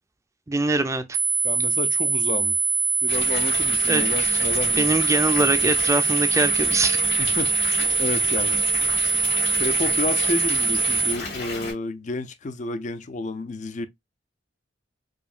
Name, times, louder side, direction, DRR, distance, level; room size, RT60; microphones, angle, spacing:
voice 1, 0.5-1.0 3.9-4.4 4.8-7.2, right 2 dB, 15° right, 0.4 m, -23 dB
sound 1, 1.1-11.1, right 5 dB, 65° right, 0.6 m, -23 dB
voice 2, 1.4-2.6 3.0-5.0 7.2-7.5 8.0-8.6 9.5-13.9, left 3 dB, 40° left, 0.4 m, -30 dB
Water tap faucet / Bathtub (filling or washing) / Fill (with liquid), 3.1-11.7, left 3 dB, 65° left, 2.4 m, -33 dB
4.9 x 2.7 x 2.3 m
head